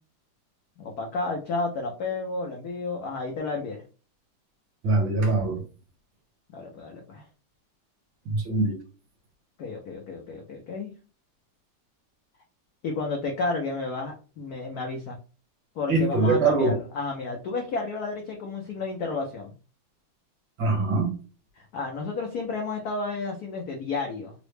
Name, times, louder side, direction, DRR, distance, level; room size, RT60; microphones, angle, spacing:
voice 1, 0.8-3.8 6.5-7.3 9.6-10.9 12.8-15.2 15.8-19.5 21.5-24.3, left 3 dB, 90° left, 2 dB, 0.8 m, -31 dB
voice 2, 4.8-5.6 8.3-8.7 15.9-16.7 20.6-21.1, right 3 dB, 65° right, 1 dB, 1.7 m, -23 dB
3.8 x 2.0 x 3.1 m, 0.36 s
omnidirectional pair, 2.4 m